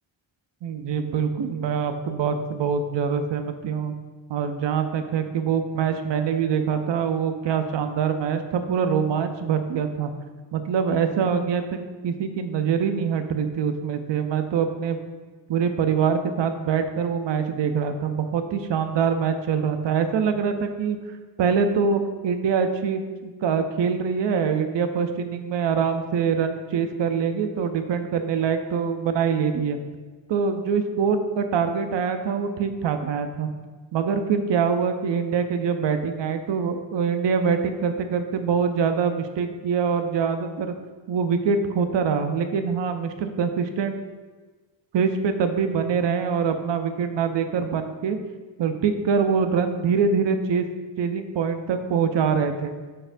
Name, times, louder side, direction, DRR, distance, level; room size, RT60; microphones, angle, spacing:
voice 1, 0.6-3.9 4.3-10.1 10.5-15.0 15.5-21.0 21.4-29.8 30.3-33.5 33.9-40.7 41.1-44.0 44.9-48.2 48.6-50.7 51.0-52.7, right 6 dB, 65° right, 7 dB, 0.7 m, -24 dB
12.5 x 4.3 x 2.6 m, 1.4 s
cardioid pair, 85°, 46 cm